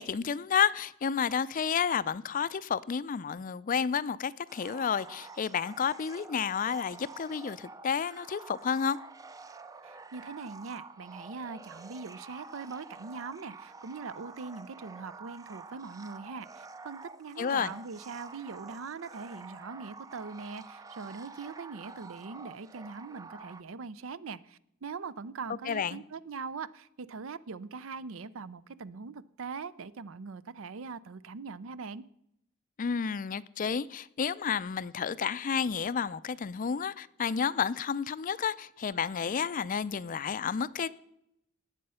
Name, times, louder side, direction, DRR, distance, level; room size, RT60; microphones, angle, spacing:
voice 1, 0.0-9.0 17.4-17.7 25.7-26.0 32.8-40.9, left 6 dB, 40° left, 0.4 m, -31 dB
sound 1, 4.5-23.6, right 4 dB, 15° right, 0.5 m, -48 dB
voice 2, 9.8-32.0, right 4 dB, 70° right, 0.5 m, -42 dB
19.0 x 7.6 x 5.6 m
head